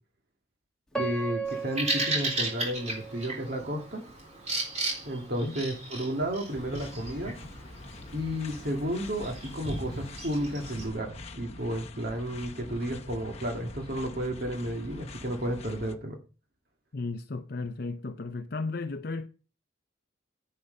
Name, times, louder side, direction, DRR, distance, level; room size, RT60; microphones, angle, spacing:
Piano, 0.9-3.9 4.5-4.6 5.3-5.5, right 3 dB, 5° left, 1.9 m, -37 dB
voice 1, 0.9-4.0 5.1-7.4 8.1-16.2, equal, 50° right, 1.8 m, -32 dB
Bird vocalization bird call bird song, 1.5-10.9, right 2 dB, 35° right, 3.6 m, -35 dB
sound 1, 6.5-16.0, left 2 dB, 30° left, 1.0 m, -45 dB
voice 2, 16.9-19.3, left 3 dB, 55° left, 0.6 m, -34 dB
10.5 x 8.6 x 5.3 m
head